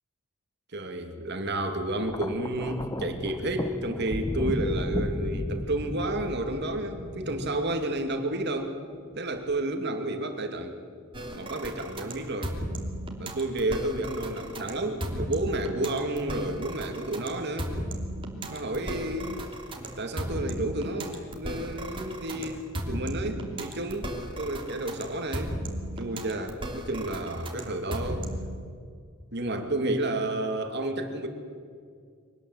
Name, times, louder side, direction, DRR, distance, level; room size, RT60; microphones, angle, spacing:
voice 1, 0.7-8.8 9.2-10.8 11.3-12.5 13.2-17.7 18.4-19.5 20.0-25.6 26.0-28.3 29.3-31.3, right 1 dB, 55° right, 5 dB, 2.5 m, -31 dB
Thunder, 2.0-8.4 9.4-9.6, left 1 dB, 20° left, 0.8 m, -34 dB
sound 1, 11.1-28.5, right 1 dB, 25° right, 3.0 m, -35 dB
24.0 x 19.0 x 8.0 m, 2.2 s
head